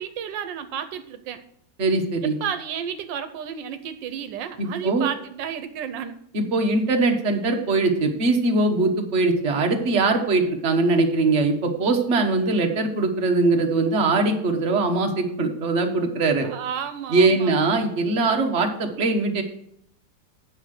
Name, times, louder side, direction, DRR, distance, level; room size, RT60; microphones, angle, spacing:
voice 1, 0.0-1.4 2.2-6.2 16.4-17.7, right 8 dB, 90° right, 10 dB, 1.5 m, -32 dB
voice 2, 1.8-2.4 4.6-5.1 6.3-16.5 17.1-19.4, right 3 dB, 40° right, 3 dB, 1.5 m, -21 dB
9.4 x 5.8 x 6.5 m, 0.70 s
omnidirectional pair, 1.9 m